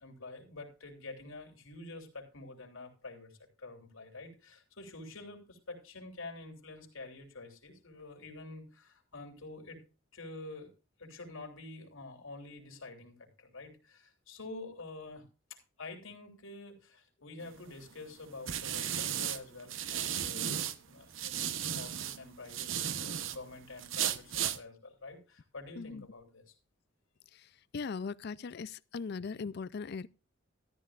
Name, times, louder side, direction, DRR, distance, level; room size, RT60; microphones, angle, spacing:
voice 1, 0.0-9.8 10.1-10.7 11.0-15.2 15.5-22.7 23.0-26.5, left 2 dB, 80° left, 3.3 m, -48 dB
sound 1, 17.5-20.8 21.1-23.4 23.8-24.6, right 10 dB, 70° right, 0.9 m, -35 dB
voice 2, 27.7-30.1, left 5 dB, 55° left, 0.4 m, -39 dB
13.5 x 12.0 x 2.5 m
head